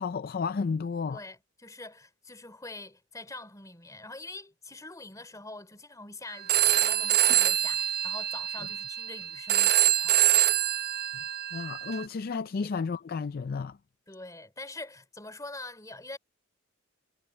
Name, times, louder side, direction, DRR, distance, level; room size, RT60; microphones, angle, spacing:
voice 1, 0.0-1.2 11.5-13.8, left 5 dB, 45° left, 0.4 m, -32 dB
voice 2, 1.1-10.4 14.1-16.2, left 2 dB, 15° left, 3.2 m, -44 dB
Telephone, 6.5-12.1, right 13 dB, 50° right, 0.9 m, -25 dB
head